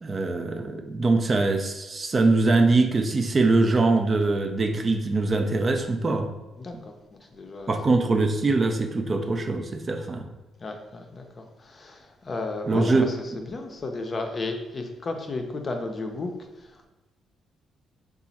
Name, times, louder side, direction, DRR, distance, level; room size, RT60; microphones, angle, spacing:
voice 1, 0.0-6.3 7.7-10.3 12.7-13.1, right 3 dB, 35° right, 5 dB, 0.4 m, -23 dB
voice 2, 6.6-7.7 10.6-16.9, left 3 dB, 35° left, 4 dB, 0.5 m, -34 dB
2.9 x 2.4 x 4.0 m, 1.1 s
cardioid pair, 90°, 0 cm